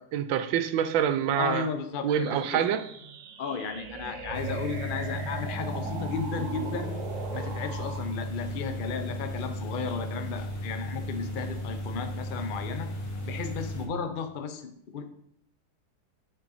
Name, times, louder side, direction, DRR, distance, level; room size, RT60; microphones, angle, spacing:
voice 1, 0.0-1.7 2.0-2.8, right 9 dB, 80° right, 1.3 m, -26 dB
voice 2, 1.3-2.6 3.4-6.9 7.3-12.9 13.2-15.1, left 5 dB, 65° left, 0.5 m, -34 dB
sound 1, 2.1-8.1, right 5 dB, 55° right, 0.9 m, -39 dB
sound 2, 4.3-13.9, equal, 45° left, 1.5 m, -35 dB
8.8 x 5.2 x 4.1 m
omnidirectional pair, 2.1 m